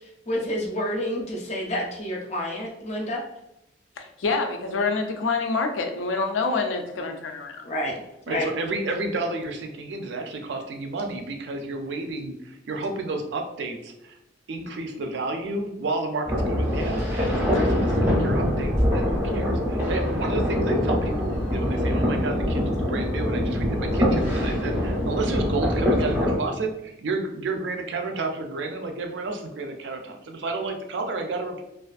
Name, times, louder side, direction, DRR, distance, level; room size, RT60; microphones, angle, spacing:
voice 1, 0.3-3.2 7.6-8.0 8.3-8.5, left 1 dB, 35° left, -2 dB, 0.5 m, -29 dB
voice 2, 4.0-7.7 17.5-17.7, left 4 dB, 90° left, 4 dB, 0.4 m, -27 dB
voice 3, 8.3-14.2 14.5-31.6, right 3 dB, 65° right, 4 dB, 0.4 m, -31 dB
sound 1, 16.3-26.4, equal, 10° right, 0.6 m, -24 dB
2.5 x 2.3 x 2.4 m, 0.87 s
head